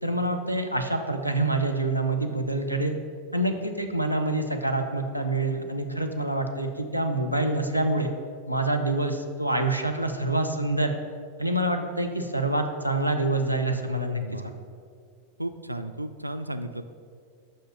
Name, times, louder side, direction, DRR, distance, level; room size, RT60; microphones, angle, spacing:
voice 1, 0.0-3.0 3.3-8.1 8.5-10.9 11.4-14.2, right 2 dB, 90° left, 5 dB, 0.6 m, -26 dB
voice 2, 14.2-14.5 15.4-16.8, right 1 dB, 85° right, 9 dB, 0.3 m, -34 dB
5.7 x 5.6 x 6.3 m, 2.1 s
figure-of-eight pair, 90°, 0 cm